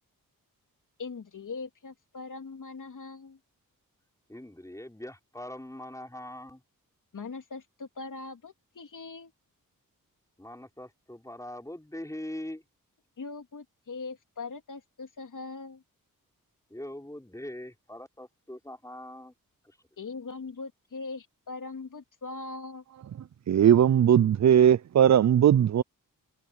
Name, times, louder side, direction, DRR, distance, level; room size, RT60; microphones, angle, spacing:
voice 1, 1.0-3.4 7.1-9.3 13.2-15.8 20.0-22.8, left 4 dB, 60° left, 3.0 m, -41 dB
voice 2, 4.3-6.6 10.4-12.6 16.7-19.3 19.6-19.8, left 1 dB, 10° left, 4.9 m, -42 dB
voice 3, 23.5-25.8, right 9 dB, 50° right, 0.5 m, -19 dB
cardioid pair, 60°, 35 cm